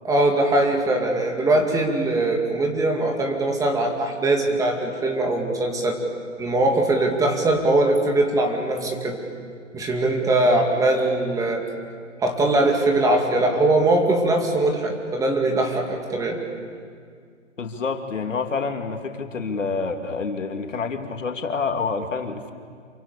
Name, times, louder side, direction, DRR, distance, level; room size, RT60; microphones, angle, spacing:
voice 1, 0.0-6.0 6.4-9.2 9.7-11.6 12.2-16.4, right 2 dB, 10° right, 2 dB, 2.4 m, -21 dB
voice 2, 17.6-22.5, left 4 dB, 80° left, 5 dB, 2.9 m, -27 dB
27.5 x 24.0 x 8.7 m, 2.1 s
hypercardioid pair, 145°, 37 cm